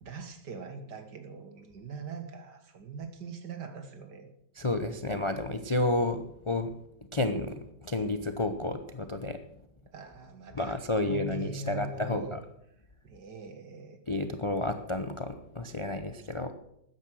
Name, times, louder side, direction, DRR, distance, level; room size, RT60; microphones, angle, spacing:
voice 1, 0.0-4.3 9.9-12.4 13.0-14.0, right 4 dB, 70° right, 7 dB, 2.2 m, -42 dB
voice 2, 4.6-6.7 7.1-9.4 10.5-12.4 14.1-16.5, left 2 dB, 50° left, 8 dB, 0.3 m, -31 dB
13.5 x 9.8 x 6.3 m, 0.77 s
omnidirectional pair, 2.0 m